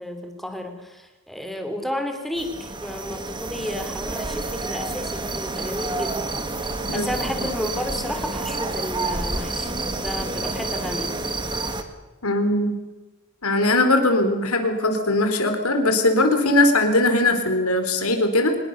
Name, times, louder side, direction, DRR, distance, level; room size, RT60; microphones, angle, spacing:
voice 1, 0.0-6.3 6.9-11.1, equal, ahead, 5 dB, 3.4 m, -32 dB
sound 1, 2.4-11.8, right 2 dB, 20° right, 2.0 m, -29 dB
voice 2, 12.2-12.8 13.4-18.6, left 2 dB, 80° left, 7 dB, 4.1 m, -20 dB
25.0 x 20.0 x 6.8 m, 1.1 s
head